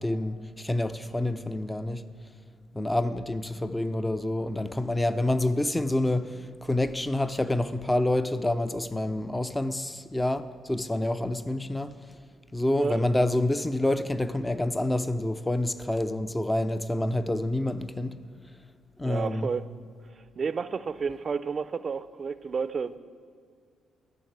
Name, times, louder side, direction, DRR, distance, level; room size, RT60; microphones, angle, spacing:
voice 1, 0.0-2.1 2.7-11.9 12.5-18.2 19.0-19.5, left 1 dB, 15° left, 0.5 m, -27 dB
voice 2, 19.0-19.7 20.1-23.0, right 5 dB, 40° right, 0.5 m, -31 dB
12.5 x 6.5 x 8.6 m
cardioid pair, 90°, 0 cm